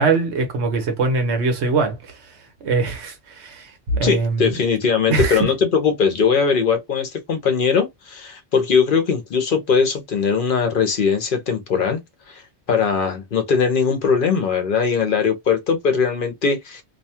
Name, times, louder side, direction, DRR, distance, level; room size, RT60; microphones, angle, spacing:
voice 1, 0.0-2.3 2.6-4.5 5.1-5.4, right 3 dB, 85° right, 1.2 m, -22 dB
voice 2, 4.0-12.0 12.3-12.4 12.7-16.8, left 6 dB, 55° left, 0.8 m, -20 dB
2.6 x 2.2 x 2.7 m
omnidirectional pair, 1.1 m